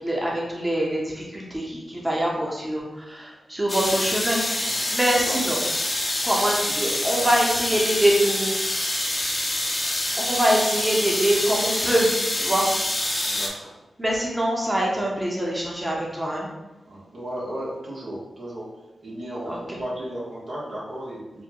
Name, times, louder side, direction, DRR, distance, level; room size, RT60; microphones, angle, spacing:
voice 1, 0.0-4.4 4.7-5.6 6.2-8.5 10.2-12.7 14.0-16.5 19.5-19.8, right 1 dB, 20° right, -3 dB, 0.9 m, -24 dB
sound 1, 3.7-13.5, left 1 dB, 30° left, 0.7 m, -26 dB
voice 2, 13.2-13.7 16.8-18.7 19.0-21.4, right 1 dB, 70° right, -6 dB, 1.1 m, -35 dB
3.9 x 2.2 x 2.9 m, 1.0 s
cardioid pair, 40°, 0 cm